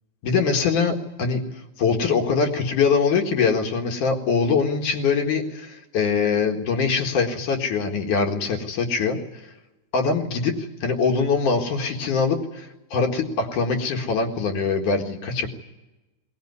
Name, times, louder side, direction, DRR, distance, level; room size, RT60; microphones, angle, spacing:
voice 1, 0.2-1.4 1.8-9.2 9.9-15.5, left 5 dB, 55° left, 3 dB, 2.5 m, -23 dB
21.0 x 19.0 x 9.6 m, 1.0 s
omnidirectional pair, 5.7 m